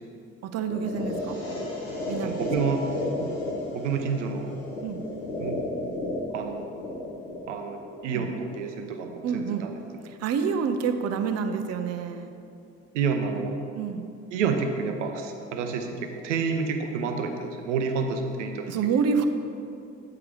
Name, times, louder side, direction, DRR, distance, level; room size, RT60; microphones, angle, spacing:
voice 1, 0.4-1.4 2.1-2.5 3.2-3.4 4.8-5.0 8.1-8.3 9.2-9.6 10.0-12.3 13.7-14.1 18.7-19.2, right 6 dB, 45° right, 7 dB, 0.6 m, -28 dB
sound 1, 0.7-8.7, left 2 dB, 90° left, 1.4 m, -33 dB
voice 2, 2.2-2.8 3.7-4.6 5.4-5.6 6.3-6.6 7.5-9.8 12.9-13.6 14.3-18.7, right 5 dB, 85° right, 5 dB, 0.7 m, -29 dB
8.3 x 4.8 x 4.8 m, 2.5 s
hypercardioid pair, 50°, 36 cm